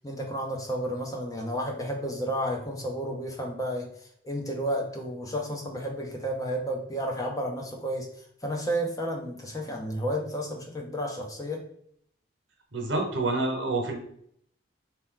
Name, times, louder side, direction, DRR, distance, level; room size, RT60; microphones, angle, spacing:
voice 1, 0.0-11.6, equal, 20° left, 1 dB, 0.7 m, -32 dB
voice 2, 12.7-14.0, right 2 dB, 85° right, 2 dB, 1.1 m, -27 dB
4.4 x 2.9 x 3.8 m, 0.68 s
head